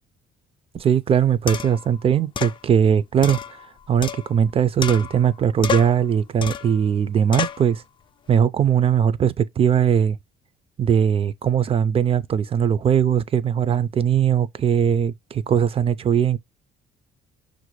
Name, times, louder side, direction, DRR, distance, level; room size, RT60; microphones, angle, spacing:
voice 1, 0.7-3.6 3.9-7.8 8.3-10.2 10.8-16.4, right 8 dB, 35° right, 0.4 m, -20 dB
sound 1, 0.8-0.9 1.5-1.9 2.4-2.6 3.2-4.5 4.8-5.3 5.6-6.0 6.4-6.8 7.3-7.7, left 8 dB, 30° left, 0.3 m, -29 dB
5.8 x 2.6 x 3.0 m
cardioid pair, 110°, 17 cm